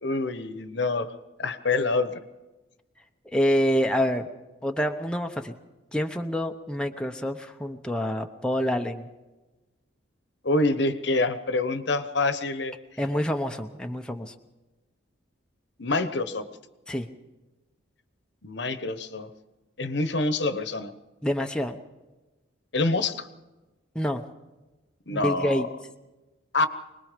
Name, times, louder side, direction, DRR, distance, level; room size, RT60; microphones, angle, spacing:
voice 1, 0.0-1.1 1.4-2.1 10.4-12.7 15.8-16.5 18.4-19.3 19.8-20.9 22.7-23.3 25.1-25.6 26.5-26.7, left 2 dB, 65° left, 11 dB, 1.1 m, -26 dB
voice 2, 3.3-4.3 4.6-5.5 5.9-9.1 13.0-14.3 16.9-17.1 21.2-21.8 23.9-24.2 25.1-25.7, equal, 5° left, 3 dB, 0.8 m, -27 dB
25.0 x 20.0 x 5.2 m, 1.1 s
head